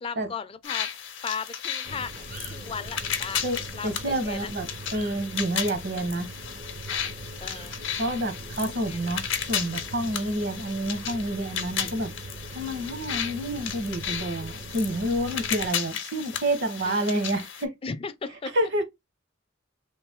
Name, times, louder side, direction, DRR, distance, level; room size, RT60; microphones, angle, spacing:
voice 1, 0.0-0.9 1.2-3.4 3.7-4.5 7.4-7.8 8.9-9.0 16.8-17.2 17.8-18.5, left 5 dB, 30° left, 0.4 m, -36 dB
sound 1, 0.6-17.6, left 8 dB, 70° left, 0.7 m, -34 dB
sound 2, 1.8-15.7, right 2 dB, 45° right, 0.5 m, -42 dB
voice 2, 3.4-6.3 8.0-12.1 12.5-17.7 18.5-18.8, right 1 dB, 60° right, 0.9 m, -29 dB
3.3 x 2.5 x 3.5 m
head